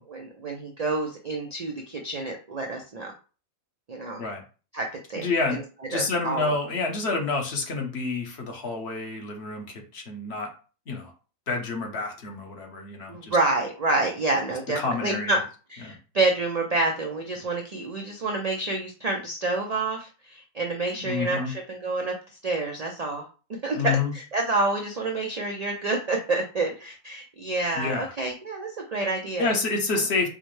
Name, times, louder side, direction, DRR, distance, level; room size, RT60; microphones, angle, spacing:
voice 1, 0.0-3.1 3.9-4.2 4.7-5.6 5.9-6.5 13.1-15.4 15.7-22.1 22.4-23.2 23.6-29.5, right 2 dB, 65° right, 1 dB, 0.3 m, -28 dB
voice 2, 5.2-5.6 5.9-10.5 10.9-11.1 11.5-13.4 14.7-15.4 15.8-15.9 20.9-21.5 23.8-24.1 27.7-28.1 29.4-30.3, left 3 dB, 55° left, 2 dB, 1.0 m, -28 dB
4.8 x 2.1 x 3.1 m, 0.35 s
omnidirectional pair, 1.5 m